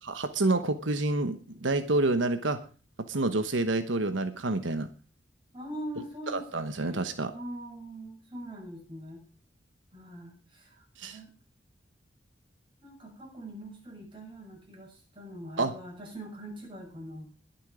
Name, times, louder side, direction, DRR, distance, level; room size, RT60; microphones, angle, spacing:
voice 1, 0.1-2.6 3.1-4.9 6.3-7.3 11.0-11.2 15.6-15.7, right 2 dB, 85° right, 9 dB, 1.2 m, -28 dB
voice 2, 5.5-7.1 7.3-9.2 9.9-11.3 12.8-17.3, equal, 25° right, -1 dB, 7.3 m, -43 dB
21.5 x 7.5 x 5.0 m, 0.36 s
head